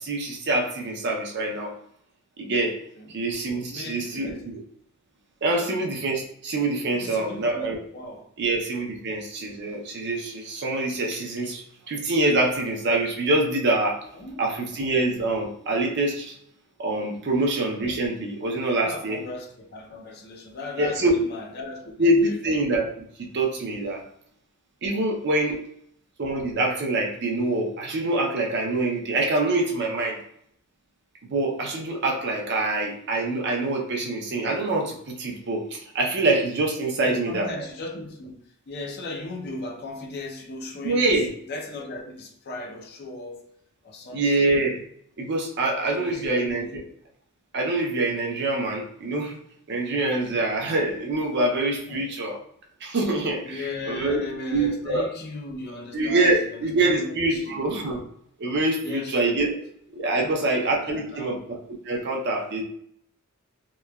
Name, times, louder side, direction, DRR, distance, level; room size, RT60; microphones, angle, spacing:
voice 1, 0.0-1.7 2.4-2.8 3.1-4.6 5.4-7.8 8.4-14.1 14.4-16.4 16.8-19.2 20.8-21.2 22.0-23.0 23.3-24.0 24.8-25.6 26.2-30.2 31.3-37.6 40.8-41.3 44.1-44.8 45.2-46.7 47.5-49.4 49.7-52.4 52.8-54.2 54.5-55.1 55.9-58.0 58.4-59.5 59.9-61.6 61.8-62.6, right 2 dB, 55° right, 0.5 m, -25 dB
voice 2, 3.7-4.4 5.6-5.7 6.9-8.2 14.1-14.4 18.8-22.4 36.9-43.5 43.8-44.4 45.9-46.9 51.9-52.0 53.4-58.0 58.8-59.4 60.2-61.4, left 2 dB, 50° left, 0.5 m, -37 dB
3.0 x 2.2 x 2.2 m
head